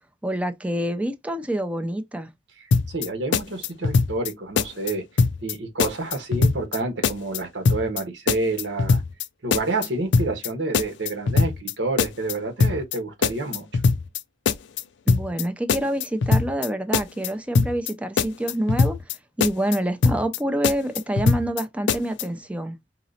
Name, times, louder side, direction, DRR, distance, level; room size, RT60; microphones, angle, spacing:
voice 1, 0.2-2.3 15.1-22.8, right 1 dB, 5° right, 0.4 m, -27 dB
sound 1, 2.7-3.1 3.3-4.3 4.6-4.9 5.2-5.5 5.8-6.8 7.0-7.4 7.6-8.0 8.3-9.2 9.5-9.9 10.1-10.5 10.7-11.7 12.0-12.3 12.6-13.0 13.2-14.2 14.5-14.8 15.1-15.4 15.7-16.7 16.9-17.3 17.5-17.9 18.2-19.1 19.4-19.8 20.0-20.4 20.6-21.6 21.9-22.2, left 4 dB, 80° left, 0.4 m, -21 dB
voice 2, 2.9-5.0 5.4-9.0 9.4-13.8, right 2 dB, 85° right, 1.3 m, -28 dB
4.8 x 3.0 x 2.7 m
head